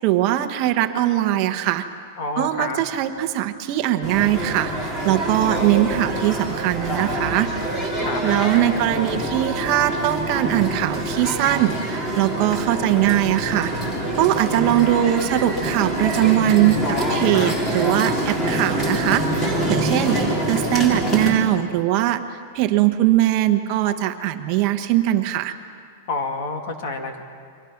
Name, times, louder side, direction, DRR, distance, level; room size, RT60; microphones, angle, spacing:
voice 1, 0.0-1.8 2.4-7.5 8.2-13.7 14.1-16.8 17.1-20.2 20.5-22.2 22.5-25.5, right 13 dB, 35° right, 7 dB, 1.1 m, -21 dB
voice 2, 2.2-2.8 8.0-8.2 16.8-17.5 26.1-27.2, left 3 dB, 45° left, 4 dB, 2.5 m, -28 dB
sound 1, 4.0-21.3, right 1 dB, 15° left, 3.6 m, -25 dB
29.5 x 24.0 x 5.9 m, 2.1 s
supercardioid pair, 170°, 0 cm